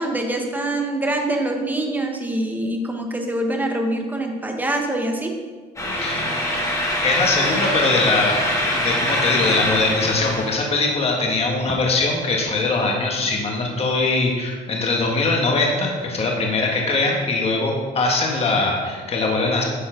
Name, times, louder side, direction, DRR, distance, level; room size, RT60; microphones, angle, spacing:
voice 1, 0.0-5.3, right 1 dB, 10° right, 2 dB, 1.2 m, -24 dB
sound 1, 5.8-10.7, left 1 dB, 20° left, 1.9 m, -23 dB
voice 2, 6.0-6.4 7.0-8.4 8.7-19.6, left 3 dB, 35° left, 0 dB, 1.4 m, -21 dB
10.0 x 4.4 x 5.1 m, 1.5 s
cardioid pair, 110°, 17 cm